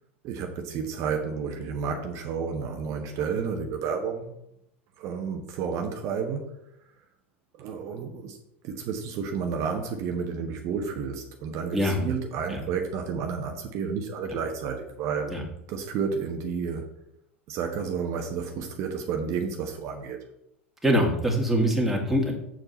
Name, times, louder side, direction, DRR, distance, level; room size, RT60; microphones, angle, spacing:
voice 1, 0.2-4.4 5.0-6.5 7.6-8.4 8.6-15.4 15.7-16.9 17.5-20.2, right 6 dB, 45° right, 3 dB, 1.2 m, -31 dB
voice 2, 11.7-12.1 12.5-12.6 15.3-15.4 20.8-22.3, equal, 5° right, -1 dB, 2.3 m, -23 dB
7.8 x 6.9 x 4.3 m, 0.80 s
hypercardioid pair, 85°, 7 cm